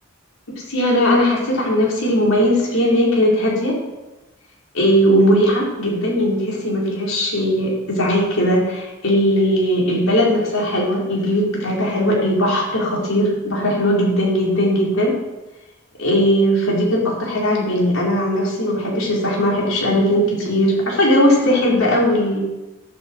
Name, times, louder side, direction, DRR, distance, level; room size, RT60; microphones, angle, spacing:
voice 1, 0.7-3.8 4.7-15.2 16.0-22.4, equal, 85° left, -3 dB, 4.9 m, -18 dB
14.0 x 12.5 x 4.8 m, 1.1 s
head